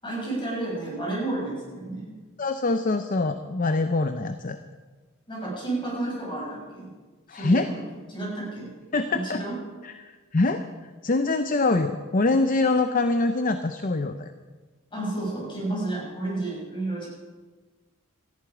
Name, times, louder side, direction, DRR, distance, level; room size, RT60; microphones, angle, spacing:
voice 1, 0.0-2.2 5.3-6.9 7.3-7.8 8.1-8.7 9.1-9.5 14.9-17.1, right 2 dB, 25° left, -4 dB, 6.8 m, -31 dB
voice 2, 2.4-4.6 7.3-7.7 8.9-9.4 9.8-10.6 11.0-14.3, left 3 dB, 40° left, 9 dB, 0.6 m, -24 dB
18.5 x 14.0 x 4.9 m, 1.3 s
head